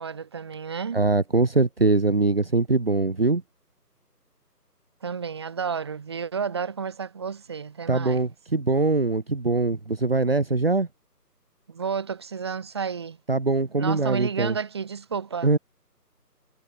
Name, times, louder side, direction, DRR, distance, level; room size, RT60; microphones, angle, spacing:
voice 1, 0.0-1.0 5.0-8.3 11.7-13.2 13.7-15.5, right 6 dB, 15° right, 2.9 m, -31 dB
voice 2, 0.9-3.4 7.9-10.9 13.3-14.6 15.4-15.6, right 3 dB, 35° right, 1.9 m, -22 dB
figure-of-eight pair, 160°, 49 cm